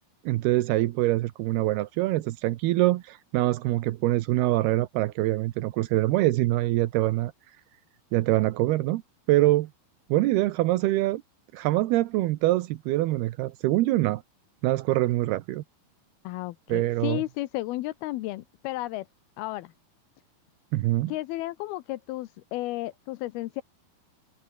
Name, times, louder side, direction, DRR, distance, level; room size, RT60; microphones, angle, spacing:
voice 1, 0.3-7.3 8.1-9.0 9.3-9.7 10.1-11.2 11.5-14.2 14.6-15.6 16.7-17.2 20.7-21.1, right 17 dB, 85° right, 2.9 m, -24 dB
voice 2, 16.2-19.1 19.4-19.7 21.1-23.6, left 17 dB, 80° left, 2.7 m, -33 dB
omnidirectional pair, 4.4 m